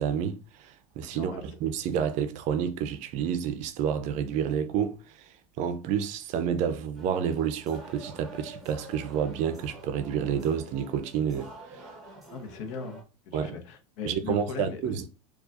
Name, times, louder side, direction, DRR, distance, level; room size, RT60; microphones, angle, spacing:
voice 1, 0.0-5.3 5.6-11.9 13.3-13.6 14.0-15.0, right 8 dB, 45° right, 0.5 m, -29 dB
voice 2, 1.1-1.4 12.3-15.0, left 5 dB, 65° left, 0.9 m, -39 dB
sound 1, 7.0-13.0, right 1 dB, ahead, 0.9 m, -47 dB
4.4 x 2.4 x 2.4 m
supercardioid pair, 130°, 17 cm